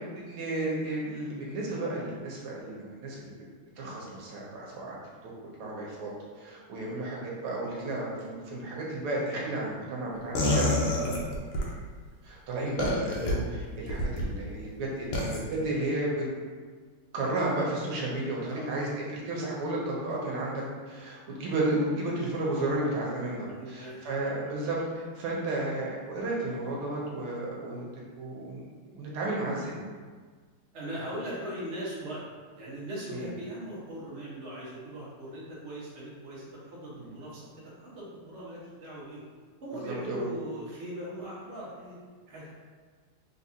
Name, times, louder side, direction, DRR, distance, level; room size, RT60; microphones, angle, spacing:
voice 1, 0.2-3.2 3.8-5.0 5.2-5.3 5.6-11.1 12.2-16.2 17.1-27.8 28.2-29.8 33.1-33.3 37.0-37.2 39.7-40.2, right 2 dB, 80° right, -4 dB, 1.8 m, -33 dB
sound 1, 10.3-11.7 12.8-13.3 13.9-14.3 15.1-15.4, left 1 dB, 80° left, 1.6 m, -27 dB
voice 2, 18.4-19.0 23.5-24.3 30.7-39.3 39.6-42.0 42.3-42.5, right 1 dB, 40° right, -8 dB, 1.1 m, -40 dB
3.9 x 3.9 x 2.7 m, 1.5 s
omnidirectional pair, 2.4 m